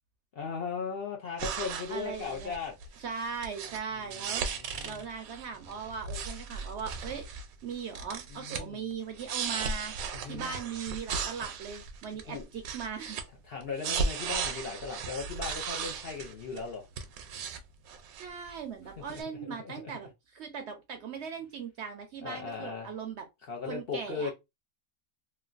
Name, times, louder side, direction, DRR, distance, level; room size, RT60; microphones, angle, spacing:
voice 1, 0.4-2.8 3.9-5.0 8.3-8.8 10.1-10.5 12.3-12.5 13.4-16.9 19.0-19.9 22.2-22.9 23.5-24.3, left 5 dB, 55° left, 0.7 m, -38 dB
sound 1, 1.4-3.0 3.4-3.8 4.1-7.5 7.7-8.6 8.9-13.2 13.6-16.6 17.0-17.6 17.9-18.5 19.1-19.2, right 5 dB, 85° right, 1.0 m, -36 dB
voice 2, 1.9-2.6 3.0-4.5 4.8-7.3 7.6-10.0 10.3-13.2 18.2-23.3 23.6-24.3, right 6 dB, 65° right, 0.7 m, -39 dB
3.0 x 2.2 x 2.4 m
omnidirectional pair, 1.5 m